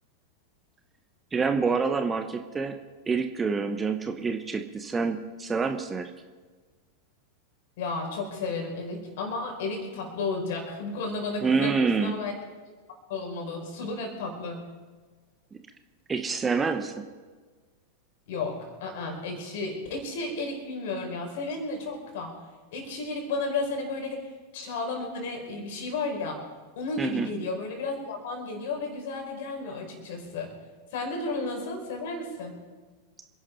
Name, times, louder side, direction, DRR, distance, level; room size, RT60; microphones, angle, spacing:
voice 1, 1.3-2.8 3.1-6.1 11.4-12.1 15.5-15.6 16.1-17.0 27.0-27.3, right 5 dB, 15° right, 7 dB, 1.1 m, -27 dB
voice 2, 7.8-12.3 13.1-14.6 18.3-22.4 22.7-26.4 26.8-30.5 30.9-32.6, left 3 dB, 55° left, 3 dB, 4.8 m, -33 dB
27.0 x 11.0 x 4.6 m, 1.4 s
figure-of-eight pair, 90°, 0 cm